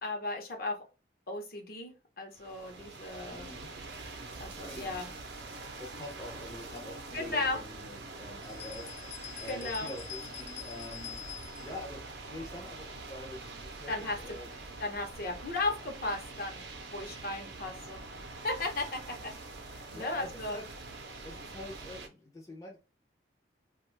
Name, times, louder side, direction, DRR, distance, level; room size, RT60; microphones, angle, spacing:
voice 1, 0.0-0.8 1.3-3.5 4.4-5.1 7.1-7.6 9.4-9.9 13.9-14.2 14.8-16.6 16.9-18.0 18.4-19.3 19.7-20.6, left 2 dB, 55° left, 3 dB, 0.7 m, -35 dB
sound 1, 2.3-22.1, right 3 dB, 70° right, 0.6 m, -45 dB
voice 2, 3.3-3.7 4.7-4.9 5.8-11.2 11.6-12.0 12.3-14.5 19.8-20.7 21.2-22.8, left 1 dB, 20° left, -1 dB, 0.5 m, -45 dB
sound 2, 8.4-11.8, left 12 dB, 75° left, 0.4 m, -45 dB
2.5 x 2.3 x 3.1 m, 0.32 s
head